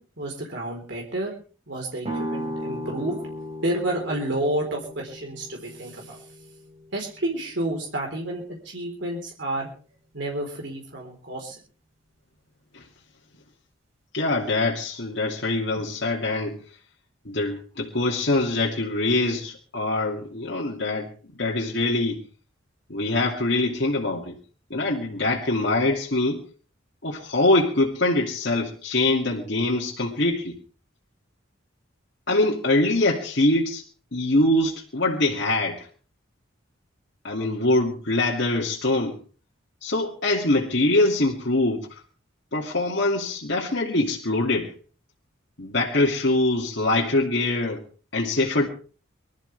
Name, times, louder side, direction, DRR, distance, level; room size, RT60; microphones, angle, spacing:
voice 1, 0.0-1.3 1.7-3.3 3.6-6.3 6.9-9.7 10.1-11.6, right 1 dB, 65° right, 0 dB, 4.2 m, -30 dB
sound 1, 2.0-7.8, equal, 35° right, 4.2 m, -36 dB
voice 2, 14.1-16.6 17.3-21.1 21.4-22.2 22.9-24.3 24.7-26.4 27.0-30.6 32.3-33.8 34.1-35.9 37.2-39.1 39.8-42.0 42.5-44.7 45.6-47.8 48.1-48.7, left 2 dB, 60° left, -3 dB, 2.6 m, -23 dB
25.0 x 13.5 x 3.4 m, 0.39 s
head